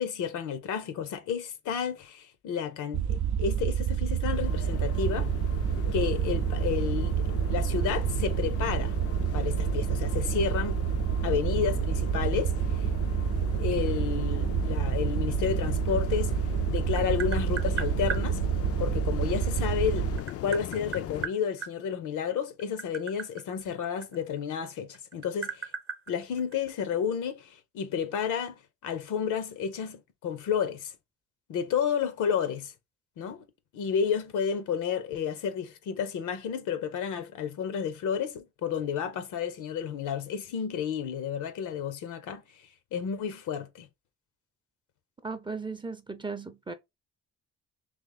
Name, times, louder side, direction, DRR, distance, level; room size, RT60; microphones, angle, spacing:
voice 1, 0.0-5.3 5.9-9.0 9.3-10.8 11.2-12.5 12.8-12.9 13.6-16.4 16.7-18.4 18.8-20.1 20.4-25.7 26.1-28.5 28.8-30.9 31.5-32.7 33.2-33.4 33.7-42.4 42.9-43.9, left 7 dB, 85° left, 0.9 m, -31 dB
sound 1, 2.9-20.2, right 9 dB, 75° right, 0.5 m, -28 dB
sound 2, 4.3-21.3, left 12 dB, 50° left, 0.4 m, -38 dB
Tap, 16.4-18.2 19.6-21.7 22.5-24.6 24.9-26.9, right 6 dB, 45° right, 0.7 m, -37 dB
voice 2, 45.2-46.7, right 4 dB, 15° right, 0.5 m, -36 dB
3.5 x 3.0 x 3.8 m
cardioid pair, 90°, 30 cm